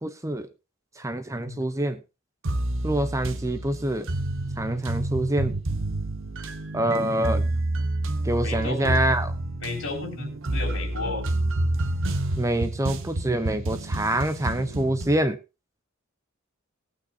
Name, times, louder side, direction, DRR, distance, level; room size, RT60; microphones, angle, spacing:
voice 1, 0.0-0.5 1.0-2.0 2.8-4.1 4.6-5.5 6.7-7.4 8.2-9.3 12.4-15.4, right 1 dB, 15° right, 11 dB, 0.8 m, -26 dB
sound 1, 2.4-15.2, right 1 dB, 65° right, 1.1 m, -29 dB
voice 2, 8.4-9.0 9.6-11.3, left 3 dB, 65° left, 3 dB, 3.9 m, -33 dB
19.0 x 8.8 x 2.8 m, 0.27 s
head